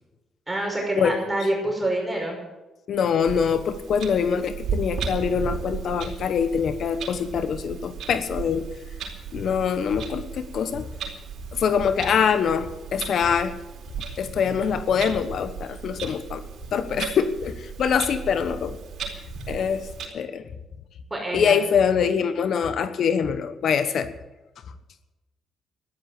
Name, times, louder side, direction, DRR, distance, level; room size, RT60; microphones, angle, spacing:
voice 1, 0.5-2.4 21.1-21.6, right 1 dB, 15° right, 0 dB, 5.6 m, -26 dB
voice 2, 2.9-8.7 9.3-10.8 11.5-13.5 14.2-16.4 16.7-18.8 19.5-19.9 20.1-20.4 21.3-24.1, left 7 dB, 65° left, 11 dB, 1.1 m, -24 dB
Clock, 3.2-20.1, right 6 dB, 70° right, 4.2 m, -36 dB
14.0 x 12.0 x 7.7 m, 1.1 s
cardioid pair, 90°, 0 cm